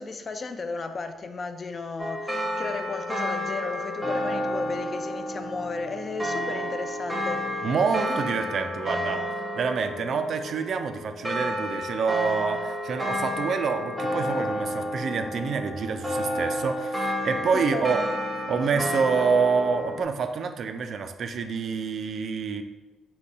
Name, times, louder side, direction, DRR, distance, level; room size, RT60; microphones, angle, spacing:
voice 1, 0.0-7.7 8.1-8.2 17.5-18.0 18.5-18.8, left 4 dB, 40° left, 8 dB, 0.3 m, -34 dB
sound 1, 2.0-20.0, equal, 5° right, 0.7 m, -31 dB
voice 2, 7.6-9.2 9.6-18.0 18.5-22.6, right 5 dB, 60° right, 7 dB, 0.3 m, -27 dB
3.8 x 2.2 x 4.0 m, 1.1 s
cardioid pair, 90°, 0 cm